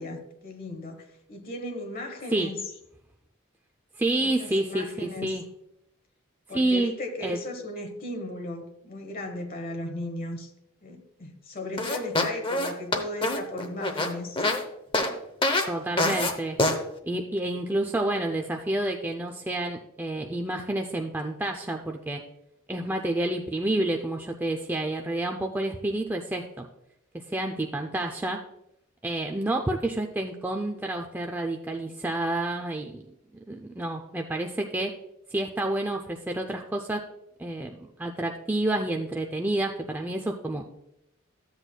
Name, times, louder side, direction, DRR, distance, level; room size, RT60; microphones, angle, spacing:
voice 1, 0.0-2.6 4.2-5.4 6.5-10.5 10.8-14.5, left 1 dB, 40° left, 3 dB, 1.2 m, -36 dB
voice 2, 4.0-5.4 6.5-6.9 7.2-7.4 15.7-16.6 17.0-22.2 22.7-26.7 27.3-28.4 29.0-33.0 33.5-34.9 35.3-37.0 37.4-37.7 38.0-40.6, right 1 dB, 10° right, 2 dB, 0.4 m, -29 dB
sound 1, 11.8-14.6 14.9-15.1 15.4-15.7 16.0-16.3 16.6-16.8, left 2 dB, 25° left, 0.8 m, -25 dB
13.5 x 8.0 x 2.2 m, 0.82 s
head